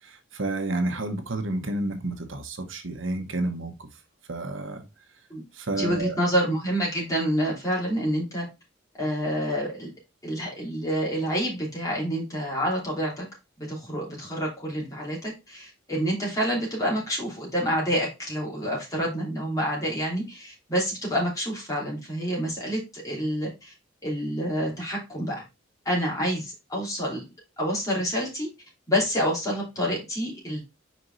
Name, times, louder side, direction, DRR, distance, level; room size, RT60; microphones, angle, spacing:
voice 1, 0.0-3.7 4.3-4.9 5.5-6.2, right 2 dB, 80° right, 1.1 m, -30 dB
voice 2, 5.7-8.5 8.9-9.9 10.2-13.3 13.6-23.7 24.0-25.4 25.8-27.2 27.6-28.5 28.9-30.6, equal, 15° left, 3.1 m, -28 dB
5.1 x 4.7 x 4.0 m
head